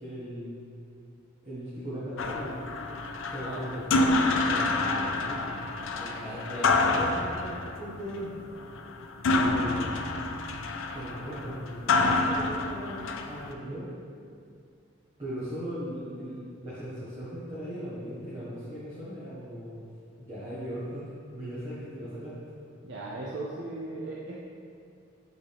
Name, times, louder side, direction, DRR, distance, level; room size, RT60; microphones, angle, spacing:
voice 1, 0.0-0.6 1.4-2.6 3.2-8.3 9.4-9.9 10.9-13.9 15.2-19.8 20.2-22.3, equal, 30° right, -12 dB, 1.3 m, -38 dB
sound 1, 2.2-13.5, left 2 dB, 70° left, 0.4 m, -28 dB
voice 2, 22.8-24.4, right 2 dB, 55° right, -6 dB, 0.6 m, -37 dB
8.1 x 3.8 x 3.4 m, 2.3 s
head